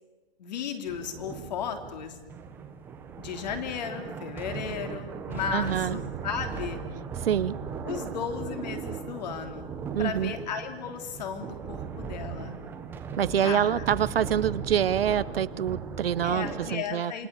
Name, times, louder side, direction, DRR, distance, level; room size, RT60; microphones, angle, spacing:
voice 1, 0.4-2.1 3.2-6.8 7.8-9.7 10.0-12.6 13.4-13.8 16.2-17.3, left 7 dB, 40° left, 7 dB, 3.3 m, -35 dB
sound 1, 0.9-16.8, right 6 dB, 5° right, 1.0 m, -38 dB
voice 2, 5.5-6.0 7.2-7.6 9.9-10.3 13.1-17.3, right 9 dB, 65° right, 17 dB, 1.0 m, -26 dB
28.0 x 21.0 x 8.3 m, 1.3 s
hypercardioid pair, 170°, 31 cm